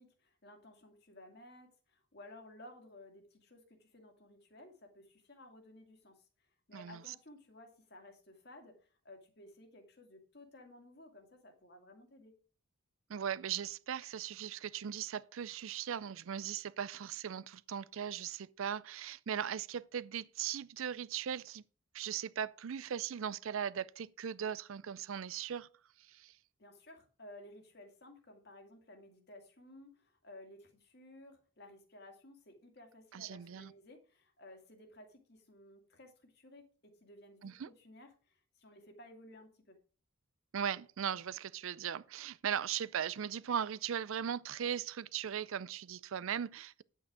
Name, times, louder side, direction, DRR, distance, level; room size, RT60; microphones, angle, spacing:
voice 1, 0.0-12.4 26.6-39.8, left 1 dB, 50° left, 2.2 m, -56 dB
voice 2, 6.7-7.1 13.1-21.6 21.9-25.7 26.0-26.3 33.1-33.7 37.4-37.7 40.5-46.8, right 8 dB, 70° right, 0.4 m, -38 dB
9.7 x 8.3 x 4.9 m
head